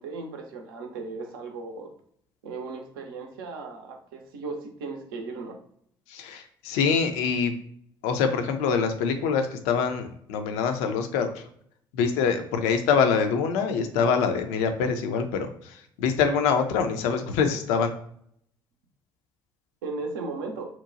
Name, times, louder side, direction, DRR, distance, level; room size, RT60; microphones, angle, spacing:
voice 1, 0.0-1.9 2.4-5.6 19.8-20.7, right 3 dB, 70° right, 3 dB, 0.6 m, -36 dB
voice 2, 6.1-7.5 8.0-11.4 11.9-17.9, left 6 dB, 65° left, 7 dB, 0.4 m, -25 dB
2.8 x 2.1 x 2.5 m, 0.65 s
figure-of-eight pair, 50°, 12 cm